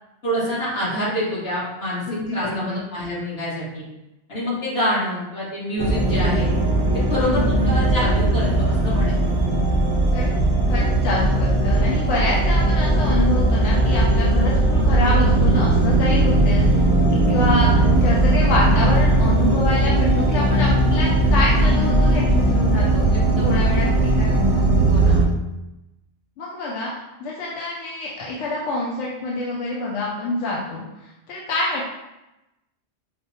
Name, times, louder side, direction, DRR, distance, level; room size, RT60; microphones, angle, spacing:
voice 1, 0.2-2.0 2.3-3.8 4.3-6.5 7.1-9.1 23.1-23.9 24.8-25.2, equal, 60° left, -8 dB, 1.7 m, -26 dB
voice 2, 2.1-2.8 7.2-7.7 10.1-10.3 10.7-16.8 17.3-23.0 23.4-24.6 26.4-26.9 27.2-30.8 31.3-31.9, left 2 dB, 85° left, -4 dB, 0.9 m, -26 dB
sound 1, 5.8-25.2, right 2 dB, 30° right, 0.4 m, -18 dB
5.0 x 2.1 x 2.8 m, 0.94 s
omnidirectional pair, 1.2 m